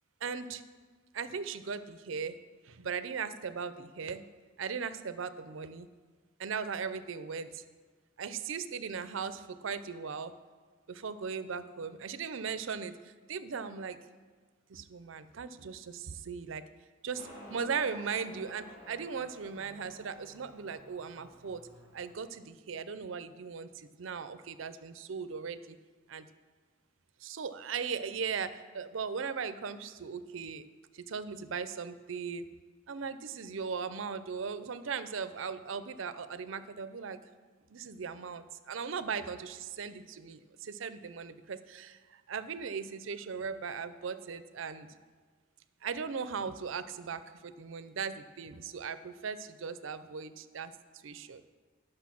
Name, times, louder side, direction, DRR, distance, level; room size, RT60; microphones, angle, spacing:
voice 1, 0.2-0.6 1.1-2.4 2.6-4.2 4.6-5.9 6.4-7.6 8.2-10.3 10.9-14.0 14.7-16.6 17.0-21.7 21.9-25.8 26.1-26.3 27.2-30.6 30.9-32.5 32.9-37.2 37.7-44.9 45.8-50.7 51.0-51.4, right 6 dB, 70° right, 13 dB, 0.5 m, -38 dB
Motorcycle, 17.1-22.1, right 1 dB, 35° left, 3.2 m, -52 dB
10.5 x 6.5 x 5.9 m, 1.5 s
head